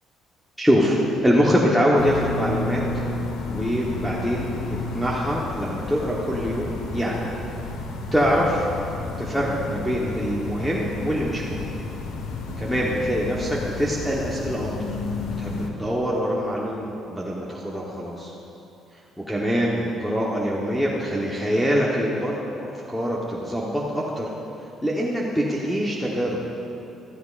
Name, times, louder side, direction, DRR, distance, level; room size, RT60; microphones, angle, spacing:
voice 1, 0.6-1.0 1.2-2.8 3.5-7.3 8.1-8.6 9.2-11.7 12.6-14.9 15.4-18.3 19.3-24.3 24.8-26.4, equal, ahead, -6 dB, 1.1 m, -24 dB
sound 1, 2.0-15.7, left 3 dB, 85° left, 1.1 m, -31 dB
15.0 x 13.5 x 2.5 m, 2.7 s
cardioid pair, 135°, 0 cm